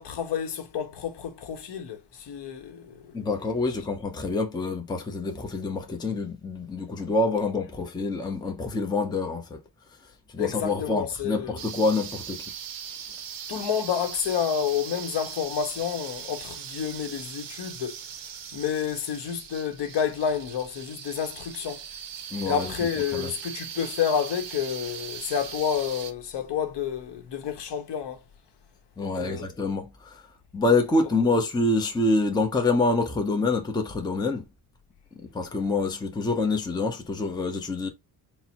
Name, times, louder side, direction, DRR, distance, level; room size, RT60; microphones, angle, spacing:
voice 1, 0.0-3.1 10.4-11.6 13.5-18.0 18.5-21.8 22.5-28.2 29.0-29.4, left 8 dB, 60° left, 0.8 m, -29 dB
voice 2, 3.1-9.6 10.3-12.5 22.3-22.7 23.1-23.3 29.0-30.2 30.5-34.4 35.3-37.9, left 3 dB, 10° left, 0.5 m, -26 dB
sound 1, 11.6-26.1, right 8 dB, 50° right, 0.7 m, -40 dB
4.2 x 2.0 x 4.0 m
cardioid pair, 160°, 47 cm